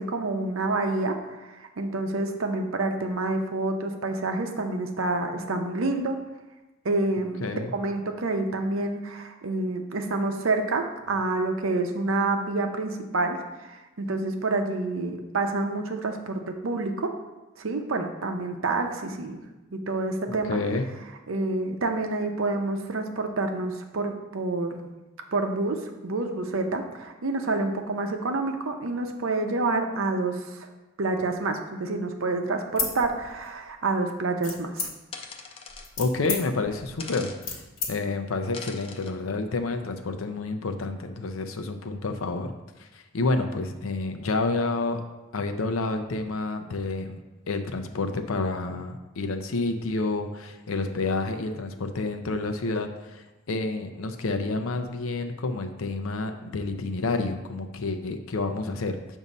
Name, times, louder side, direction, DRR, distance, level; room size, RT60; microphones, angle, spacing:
voice 1, 0.0-6.2 6.8-7.4 7.7-17.1 17.6-19.4 19.7-20.6 21.3-24.9 25.3-30.7 31.0-34.9, right 2 dB, 80° right, 5 dB, 0.7 m, -28 dB
voice 2, 7.4-7.7 20.3-20.9 36.0-37.6 37.9-42.5 42.8-45.0 45.3-47.2 47.5-59.2, left 3 dB, 90° left, 7 dB, 0.6 m, -29 dB
sound 1, 32.7-33.7 34.4-35.2 35.7-37.9, left 4 dB, 70° left, 1.3 m, -32 dB
sound 2, 35.1-35.9 37.0-37.4 38.5-39.1, left 4 dB, 25° left, 0.4 m, -41 dB
7.2 x 2.7 x 5.3 m, 1.1 s
head